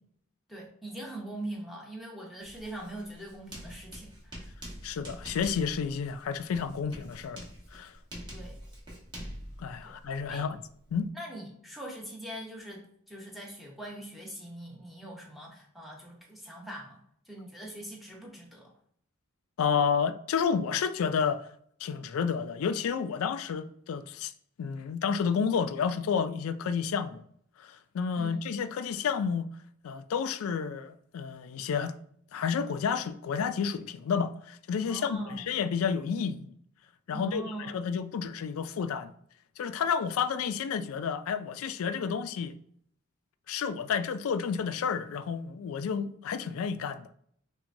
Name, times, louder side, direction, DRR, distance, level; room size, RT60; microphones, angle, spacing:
voice 1, 0.5-4.5 8.3-8.6 9.8-10.0 10.3-10.4 11.1-17.0 17.3-18.7 28.1-28.4 34.8-35.5 37.1-37.8, right 1 dB, ahead, 0.8 m, -42 dB
Writing, 2.4-11.1, equal, 20° right, 1.2 m, -46 dB
voice 2, 4.8-7.9 9.6-10.6 10.9-11.1 19.6-21.5 21.8-24.3 24.6-27.2 27.6-29.5 29.8-32.0 32.3-36.6 37.1-39.1 39.6-42.6 43.5-47.1, left 6 dB, 80° left, 0.3 m, -30 dB
5.7 x 2.2 x 2.6 m
head